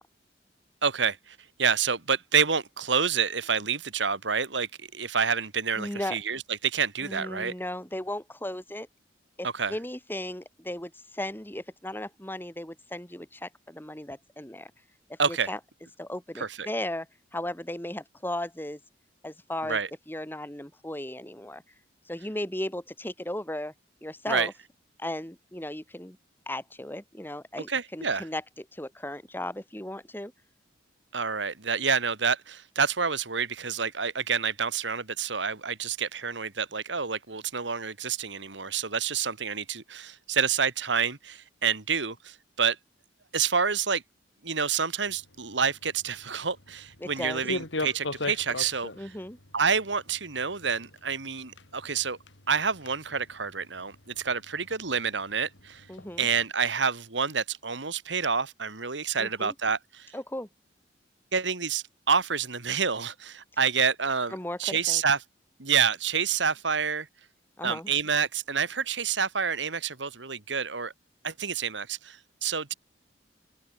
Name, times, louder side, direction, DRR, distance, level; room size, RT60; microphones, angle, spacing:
voice 1, 0.8-7.5 9.4-9.7 15.2-15.5 16.4-16.7 19.7-19.9 24.3-24.5 27.7-28.2 31.1-42.8 43.3-44.0 44.4-48.9 49.5-52.2 52.5-55.8 56.2-60.1 61.3-64.3 64.6-65.2 65.6-67.1 67.6-70.9 71.2-72.7, right 6 dB, 80° right, 2.3 m, -28 dB
voice 2, 5.7-6.2 7.0-8.9 9.4-14.7 15.1-15.6 16.0-17.1 17.3-18.8 19.2-19.8 20.1-21.6 22.0-23.7 24.0-24.5 25.0-26.2 26.5-30.3 47.0-47.4 49.0-49.4 55.9-56.3 59.2-59.5 60.1-60.5 64.3-65.0 67.6-67.9, left 1 dB, 10° left, 2.9 m, -36 dB
sound 1, 45.0-56.4, left 2 dB, 85° left, 5.4 m, -41 dB
open air
head